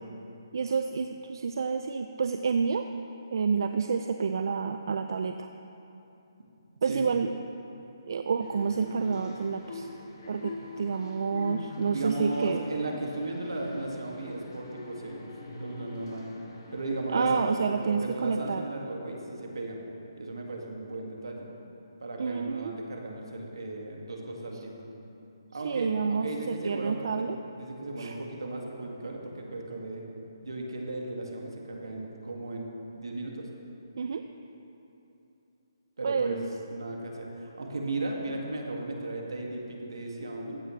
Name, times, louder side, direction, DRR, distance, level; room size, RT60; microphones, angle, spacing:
voice 1, 0.5-2.8 3.3-5.5 6.8-7.3 8.1-9.9 10.3-12.6 17.1-18.6 22.2-22.8 25.6-27.4 28.0-28.2 34.0-34.2 36.0-36.5, right 5 dB, 65° right, 7 dB, 0.4 m, -29 dB
sound 1, 8.4-17.6, left 2 dB, 60° left, 2.0 m, -43 dB
voice 2, 11.9-15.3 15.6-16.3 16.7-19.8 20.2-21.5 22.0-24.8 25.5-27.0 27.3-30.0 30.4-32.7 33.0-33.5 36.0-36.4 36.7-40.6, right 2 dB, 85° right, 0 dB, 2.0 m, -36 dB
15.5 x 10.5 x 3.2 m, 2.9 s
hypercardioid pair, 155°, 2 cm